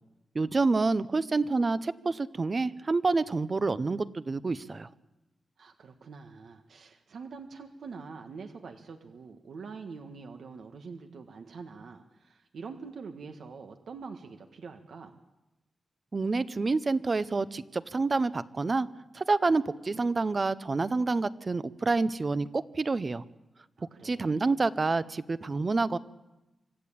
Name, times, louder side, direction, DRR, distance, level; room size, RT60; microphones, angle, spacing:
voice 1, 0.3-4.9 16.1-18.9 19.1-23.2 24.0-26.0, right 3 dB, 35° right, 15 dB, 0.9 m, -28 dB
voice 2, 5.6-15.2 23.8-24.5, right 5 dB, 75° right, 5 dB, 1.6 m, -45 dB
25.5 x 13.5 x 8.7 m, 0.99 s
wide cardioid pair, 95°, 0 cm